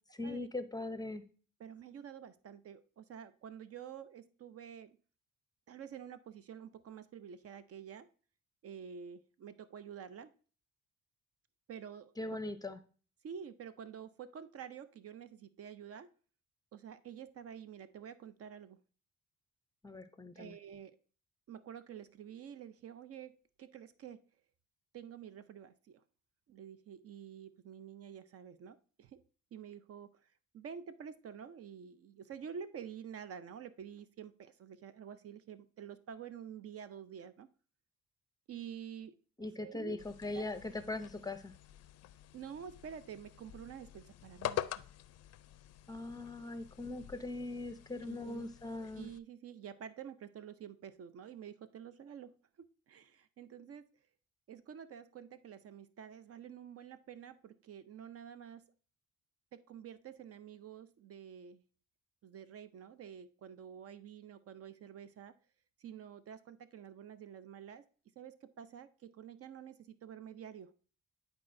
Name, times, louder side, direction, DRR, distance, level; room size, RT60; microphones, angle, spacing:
voice 1, 0.1-1.2 12.2-12.8 19.8-20.6 39.4-41.5 45.9-49.1, left 2 dB, 15° left, 10 dB, 0.6 m, -40 dB
voice 2, 1.6-5.0 5.7-8.1 8.6-10.3 11.7-12.1 13.2-16.1 16.7-18.8 20.3-21.0 21.5-23.3 23.6-24.2 24.9-26.0 26.5-29.2 29.5-30.1 30.5-37.5 38.5-39.2 39.6-40.0 40.3-40.4 42.3-44.8 48.0-48.5 48.9-53.9 54.5-58.7 59.5-61.6 62.2-65.3 65.8-67.9 68.2-70.7, right 8 dB, 50° right, 13 dB, 0.5 m, -49 dB
sound 1, 40.0-49.2, left 12 dB, 55° left, 0.4 m, -46 dB
10.5 x 4.3 x 2.6 m, 0.40 s
cardioid pair, 90°, 30 cm